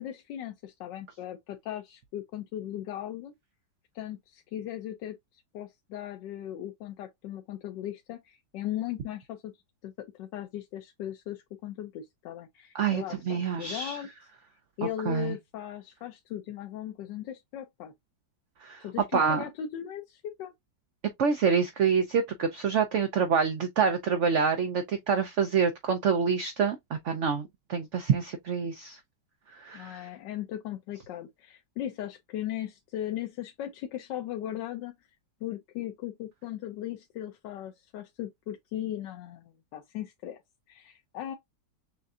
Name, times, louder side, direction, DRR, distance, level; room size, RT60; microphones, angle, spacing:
voice 1, 0.0-3.3 3.9-9.5 9.8-14.1 14.8-17.9 18.8-20.5 29.7-34.9 35.4-40.4 40.7-41.3, left 11 dB, 90° left, 1.4 m, -38 dB
voice 2, 12.7-14.0 15.1-15.3 18.6-18.8 19.1-19.4 21.2-26.8 27.0-29.0 29.5-30.1, right 6 dB, 65° right, 0.7 m, -27 dB
6.7 x 2.6 x 2.4 m
omnidirectional pair, 1.9 m